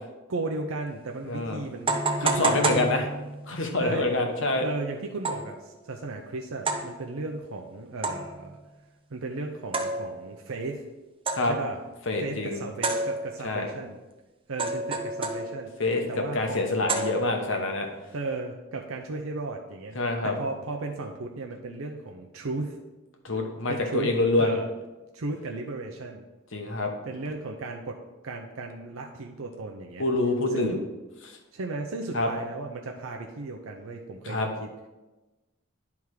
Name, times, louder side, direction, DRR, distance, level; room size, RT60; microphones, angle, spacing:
voice 1, 0.3-3.1 3.8-4.1 4.6-8.6 9.1-10.9 11.4-11.8 12.2-14.0 14.5-15.7 16.1-16.8 18.1-22.8 23.7-24.1 24.4-24.7 25.1-26.2 27.1-30.1 30.5-30.9 31.5-34.7, right 3 dB, 80° right, 1 dB, 0.7 m, -35 dB
sound 1, 0.9-1.0 1.9-3.5 5.2-5.6 6.7-7.0 8.0-8.5 9.7-10.4 11.3-11.7 12.8-13.6 14.6-15.8 16.9-17.6, right 2 dB, 25° right, 0.7 m, -29 dB
voice 2, 1.3-1.6 2.2-3.1 3.5-4.7 11.3-11.5 12.1-12.6 13.4-13.7 15.8-16.0 16.3-17.9 19.9-20.3 23.2-24.5 26.5-26.9 30.0-30.7 32.1-32.3 34.2-34.5, left 2 dB, 65° left, 3 dB, 1.2 m, -26 dB
10.5 x 3.6 x 4.7 m, 1.1 s
head